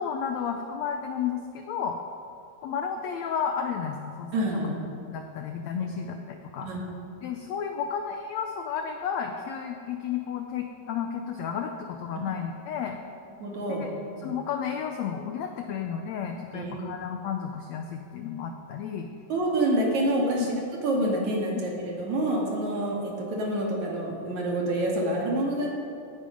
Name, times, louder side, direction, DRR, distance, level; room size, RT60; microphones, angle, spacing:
voice 1, 0.0-2.0 2.6-4.3 4.6-4.7 5.1-6.7 7.2-13.0 13.7-13.9 14.2-19.1 20.4-20.5, left 7 dB, 90° left, 5 dB, 1.5 m, -32 dB
voice 2, 4.3-4.7 5.8-5.9 6.6-6.8 13.4-13.8 14.1-14.3 16.5-16.7 19.3-20.6 20.8-25.7, right 1 dB, 60° right, -2 dB, 3.2 m, -27 dB
16.0 x 10.0 x 5.2 m, 2.6 s
omnidirectional pair, 4.0 m